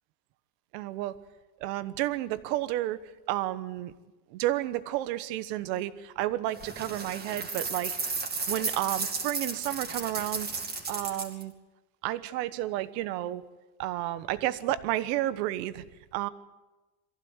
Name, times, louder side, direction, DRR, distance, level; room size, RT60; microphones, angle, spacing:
voice 1, 0.7-1.2 1.6-3.0 3.3-3.9 4.3-8.0 8.5-10.5 10.9-11.5 12.0-13.4 13.8-15.8 16.1-16.3, right 15 dB, 85° right, 14 dB, 1.3 m, -31 dB
sound 1, 6.5-11.4, right 4 dB, 20° right, 2.5 m, -34 dB
23.0 x 15.5 x 8.1 m, 1.1 s
cardioid pair, 160°, 49 cm